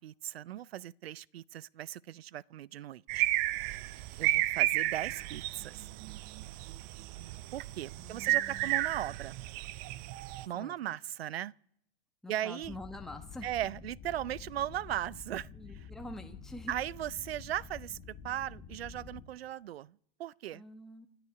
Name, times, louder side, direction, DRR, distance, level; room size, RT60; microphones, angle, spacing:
voice 1, 0.0-3.3 4.2-5.8 7.5-9.4 10.5-11.5 12.3-12.8 13.4-15.5 16.7-20.6, right 12 dB, 90° right, 0.5 m, -38 dB
sound 1, 3.1-10.5, right 17 dB, 35° right, 0.5 m, -33 dB
voice 2, 8.0-8.8 10.5-11.0 12.2-13.5 15.5-16.7 20.5-21.1, left 1 dB, ahead, 1.1 m, -46 dB
sound 2, 12.6-19.3, left 7 dB, 25° left, 2.3 m, -49 dB
29.0 x 10.0 x 4.8 m
hypercardioid pair, 130°, 30 cm